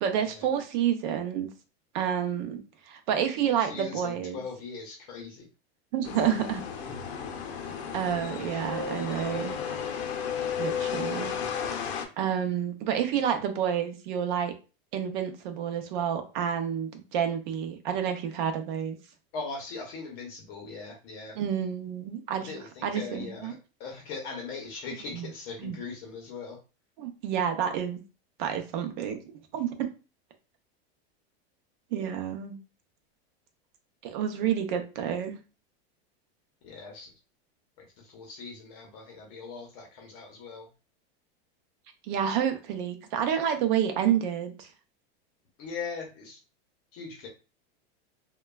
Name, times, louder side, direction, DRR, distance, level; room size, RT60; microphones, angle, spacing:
voice 1, 0.0-1.5 1.9-4.4 5.9-6.6 7.9-9.6 10.6-11.3 12.2-14.5 14.9-19.0 21.4-23.5 25.1-25.3 25.6-25.8 27.0-28.0 28.4-29.2 29.5-29.7 31.9-32.6 34.0-35.4 42.1-44.7, right 9 dB, 50° right, 6 dB, 0.6 m, -29 dB
voice 2, 3.6-5.5 19.3-21.4 22.4-23.5 23.8-26.6 36.6-37.1 37.8-40.7 45.6-46.4 46.9-47.3, left 4 dB, 40° left, 0 dB, 0.8 m, -40 dB
sound 1, 6.0-12.0, left 7 dB, 85° left, 0.6 m, -33 dB
3.0 x 2.2 x 2.2 m, 0.32 s
supercardioid pair, 160°, 31 cm